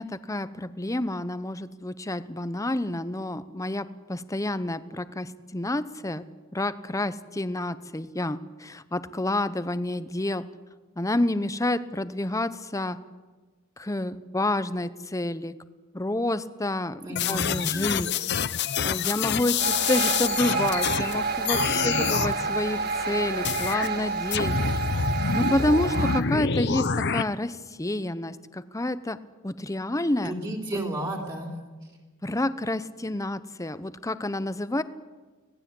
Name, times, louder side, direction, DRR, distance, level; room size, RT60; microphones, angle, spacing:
voice 1, 0.0-6.2 6.5-10.4 11.0-13.0 13.8-15.6 15.9-17.0 17.3-18.1 18.8-24.8 25.3-30.3 32.2-34.8, left 1 dB, 15° left, 13 dB, 0.8 m, -29 dB
voice 2, 17.0-17.7 21.8-22.5 30.2-31.5, right 1 dB, 25° right, 1 dB, 3.2 m, -33 dB
sound 1, 17.2-21.1 21.4-22.3 23.4-23.9 24.3-27.2, left 6 dB, 55° left, 0.8 m, -27 dB
sound 2, 19.6-26.2, right 4 dB, 50° right, 1.5 m, -29 dB
25.5 x 18.5 x 8.6 m, 1.3 s
head